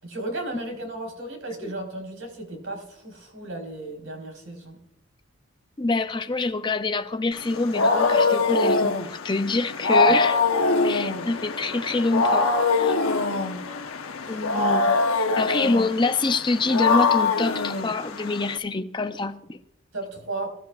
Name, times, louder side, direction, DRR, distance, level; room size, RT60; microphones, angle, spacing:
voice 1, 0.0-4.8 14.3-14.5 19.9-20.6, right 2 dB, 70° right, 4.3 m, -35 dB
voice 2, 5.8-10.4 10.8-12.9 14.3-15.0 15.4-19.6, left 3 dB, 20° left, 0.5 m, -26 dB
Wild animals, 7.4-18.6, left 3 dB, 85° left, 1.0 m, -23 dB
22.0 x 12.5 x 2.4 m
head